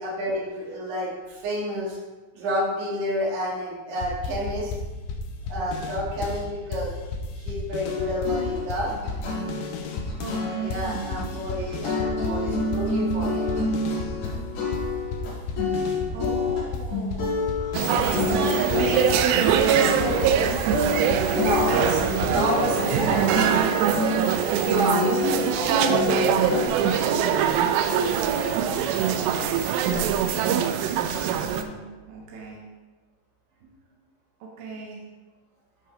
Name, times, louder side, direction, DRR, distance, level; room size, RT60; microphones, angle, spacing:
voice 1, 0.0-2.0 2.3-4.7 5.5-6.9 7.4-8.9 10.6-13.5 21.3-23.3 24.6-29.5, equal, 55° right, -5 dB, 3.0 m, -30 dB
sound 1, 4.0-6.5 6.7-10.4 10.7-14.5 14.7-22.5, left 3 dB, 85° left, 3.2 m, -33 dB
sound 2, 7.9-19.5 19.7-20.5 20.7-23.0 23.3-24.6 24.9-26.7, left 3 dB, 60° left, 4.0 m, -28 dB
voice 2, 10.2-11.5 11.7-11.9 15.6-20.5 21.7-22.0 22.4-23.9 24.9-25.4 25.7-25.8 31.4-32.6 33.6-33.7 34.4-35.0, right 3 dB, 70° right, -2 dB, 2.5 m, -32 dB
sound 3, 17.7-31.6, right 8 dB, 90° right, 2.4 m, -23 dB
13.0 x 5.3 x 3.2 m, 1.3 s
omnidirectional pair, 5.5 m